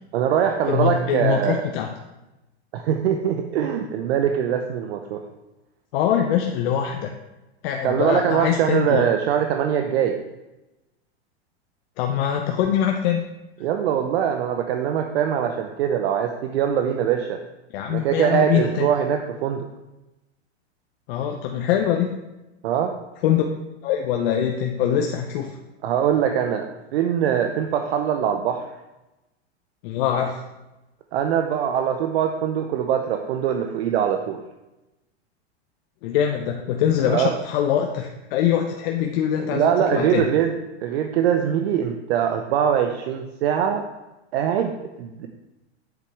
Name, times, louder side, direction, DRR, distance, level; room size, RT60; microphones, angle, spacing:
voice 1, 0.1-1.6 2.7-5.2 7.8-10.2 13.6-17.4 17.9-19.7 22.6-22.9 25.8-26.7 26.9-28.7 31.1-34.4 37.0-37.3 39.4-40.5 40.8-43.8 44.3-45.3, right 9 dB, 65° right, 4 dB, 0.8 m, -22 dB
voice 2, 0.7-1.9 5.9-7.1 7.6-9.1 12.0-13.2 17.7-18.9 21.1-22.1 23.2-23.5 23.8-25.6 29.8-30.4 36.0-40.3, left 9 dB, 55° left, 3 dB, 0.7 m, -23 dB
8.2 x 6.8 x 3.4 m, 1.0 s
hypercardioid pair, 115°, 33 cm